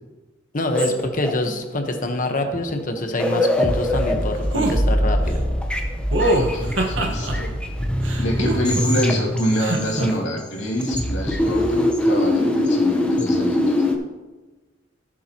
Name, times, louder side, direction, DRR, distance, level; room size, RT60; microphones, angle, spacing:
voice 1, 0.5-5.4, left 2 dB, 45° left, 5 dB, 1.1 m, -25 dB
sound 1, 0.7-1.7 2.7-2.8 3.1-10.5 10.8-14.0, left 1 dB, 5° left, 0.9 m, -22 dB
sound 2, 4.5-4.8 6.1-7.3 8.0-9.0 9.6-10.1, right 1 dB, 70° right, 1.4 m, -22 dB
voice 2, 6.2-7.5 8.2-13.8, equal, 75° left, -2 dB, 2.5 m, -26 dB
15.5 x 7.3 x 3.0 m, 1.2 s
head